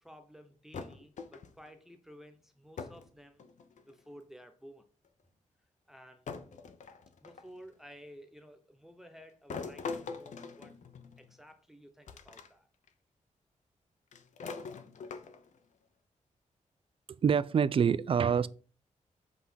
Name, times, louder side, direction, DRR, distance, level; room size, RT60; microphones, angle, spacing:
voice 1, 0.0-3.5 3.9-4.8 5.9-6.3 7.2-10.8 11.2-12.7, equal, 5° right, 0.7 m, -54 dB
sound 1, 0.7-1.7 2.8-3.1 3.4-4.0 5.0-5.1 6.3-7.6 9.5-11.3 12.1-12.5 12.9-13.0 14.1-15.6, left 5 dB, 70° left, 0.9 m, -43 dB
voice 2, 17.1-18.5, right 7 dB, 45° right, 0.4 m, -26 dB
8.0 x 3.8 x 5.9 m
wide cardioid pair, 155°, 13 cm